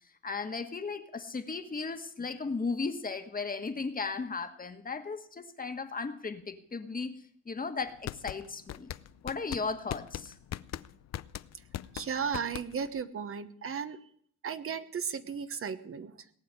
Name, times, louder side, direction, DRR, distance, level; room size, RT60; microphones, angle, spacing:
voice 1, 0.2-7.2 7.4-8.9 9.2-10.3, left 4 dB, 30° left, 8 dB, 1.6 m, -36 dB
sound 1, 7.8-13.0, left 13 dB, 60° left, 0.6 m, -40 dB
voice 2, 11.9-14.1 14.4-16.3, right 6 dB, 45° right, 11 dB, 1.1 m, -35 dB
18.5 x 6.9 x 9.4 m, 0.63 s
cardioid pair, 90°, 30 cm